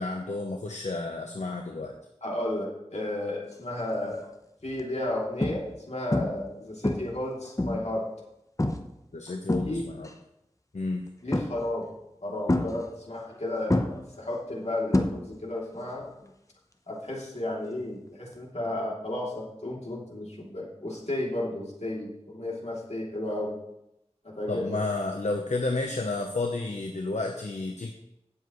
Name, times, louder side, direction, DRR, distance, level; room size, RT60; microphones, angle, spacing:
voice 1, 0.0-1.9 9.1-10.1 10.7-11.0 24.5-27.9, left 3 dB, 80° left, 3 dB, 0.8 m, -31 dB
voice 2, 2.2-4.2 4.6-8.0 9.5-9.8 11.2-11.9 12.2-16.0 16.9-23.5 24.3-24.8, left 1 dB, 65° left, -3 dB, 2.9 m, -33 dB
sound 1, 3.8-4.1 4.7-4.8 5.4-5.8 6.1-6.5 6.8-8.0 8.6-8.9 9.3-10.1 11.3-11.8 12.5-13.4 13.7-15.6 15.8-16.3 18.3-18.4, left 1 dB, 25° left, 0.8 m, -28 dB
16.5 x 7.2 x 3.1 m, 0.86 s
wide cardioid pair, 50°, 12 cm